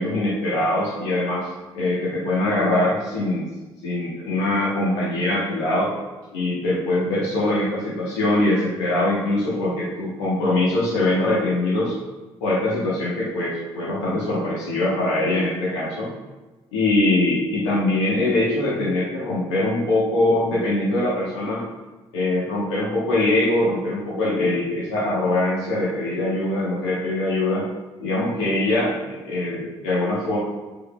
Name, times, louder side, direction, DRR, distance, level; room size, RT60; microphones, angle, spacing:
voice 1, 0.0-1.5 1.7-3.4 3.8-5.9 6.3-11.9 12.4-16.1 16.7-21.6 22.1-27.7 28.0-30.4, left 2 dB, 80° left, -7 dB, 1.3 m, -22 dB
8.9 x 4.8 x 2.4 m, 1.2 s
hypercardioid pair, 45°, 14 cm